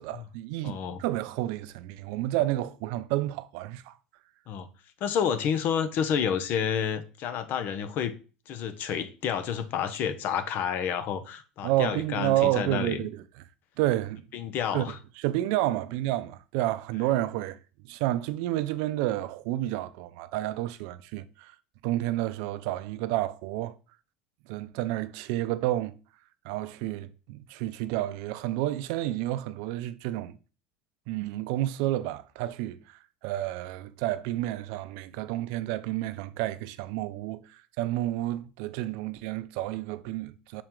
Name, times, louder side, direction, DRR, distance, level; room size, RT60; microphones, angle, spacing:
voice 1, 0.0-3.9 11.6-13.2 13.8-14.2 14.7-14.8 15.2-17.6 17.8-21.5 21.8-23.8 24.5-26.0 26.4-30.4 31.1-40.6, right 15 dB, 70° right, 0.5 m, -30 dB
voice 2, 0.6-1.0 4.5-4.7 5.0-8.1 8.5-13.0 14.3-15.0, left 8 dB, 55° left, 0.9 m, -29 dB
6.0 x 4.4 x 3.8 m
supercardioid pair, 100°, 4 cm